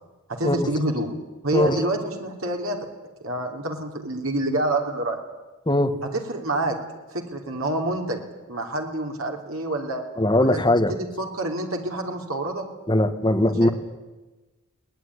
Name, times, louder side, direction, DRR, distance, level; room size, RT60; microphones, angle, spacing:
voice 1, 0.3-1.1 1.4-2.8 3.2-5.2 6.1-6.7 7.1-8.2 8.5-10.0 10.4-10.6 10.9-12.7 13.6-13.7, right 1 dB, 70° right, 2 dB, 3.5 m, -27 dB
voice 2, 1.5-1.8 5.7-6.0 10.2-10.9 12.9-13.7, left 1 dB, 20° left, 7 dB, 1.5 m, -20 dB
23.0 x 19.0 x 9.8 m, 1.2 s
head